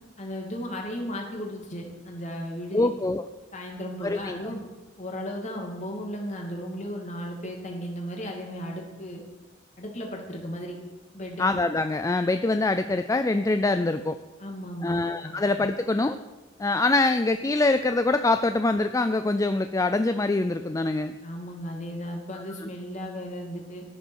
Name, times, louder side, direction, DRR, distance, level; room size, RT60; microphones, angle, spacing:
voice 1, 0.2-2.9 3.5-4.6 5.0-9.2 9.8-10.7 11.1-11.5 14.4-15.3 21.2-23.8, equal, 40° left, 1 dB, 2.5 m, -35 dB
voice 2, 2.7-3.3 4.0-4.4 11.4-14.2 14.8-16.2 16.6-21.1, left 2 dB, 15° left, 9 dB, 0.4 m, -24 dB
13.5 x 6.8 x 6.4 m, 1.2 s
head